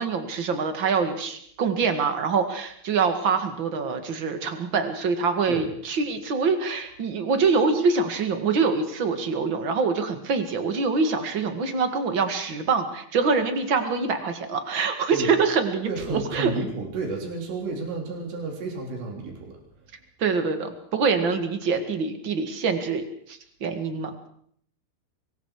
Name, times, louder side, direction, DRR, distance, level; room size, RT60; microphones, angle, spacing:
voice 1, 0.0-16.5 20.2-23.0 23.3-24.3, right 5 dB, 40° right, 7 dB, 1.9 m, -25 dB
voice 2, 15.8-19.6, right 3 dB, 80° right, 0 dB, 6.2 m, -31 dB
24.5 x 22.0 x 5.0 m, 0.64 s
omnidirectional pair, 4.9 m